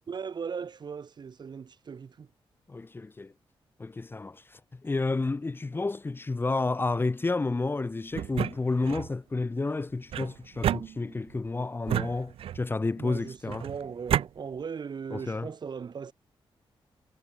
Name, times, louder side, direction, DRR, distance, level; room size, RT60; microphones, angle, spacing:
voice 1, 0.1-2.3 13.0-16.1, right 6 dB, 50° right, 4.0 m, -38 dB
voice 2, 2.7-3.3 3.8-13.7 15.1-15.5, left 3 dB, 25° left, 1.4 m, -31 dB
sound 1, 8.1-9.1 10.1-11.4 11.9-12.8 13.5-14.3, right 11 dB, 80° right, 0.4 m, -31 dB
wide cardioid pair, 120°, 10 cm